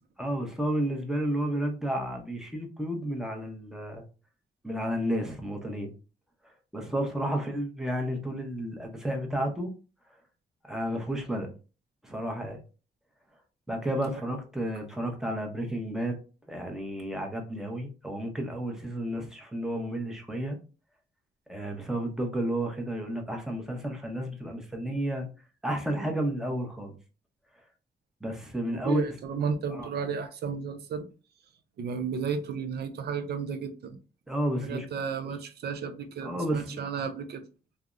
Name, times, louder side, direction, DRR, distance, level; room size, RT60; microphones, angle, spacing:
voice 1, 0.2-4.0 4.6-5.9 6.7-9.7 10.7-11.5 12.0-12.6 13.7-16.2 16.5-20.6 21.5-25.3 25.6-27.0 28.2-29.0 29.7-29.9 34.3-34.9 35.2-35.3 36.2-36.8, right 1 dB, 5° right, 0.7 m, -31 dB
voice 2, 28.7-31.1 31.8-34.0 34.6-37.4, right 6 dB, 70° right, 0.5 m, -33 dB
3.3 x 2.0 x 2.4 m
cardioid pair, 110°, 17 cm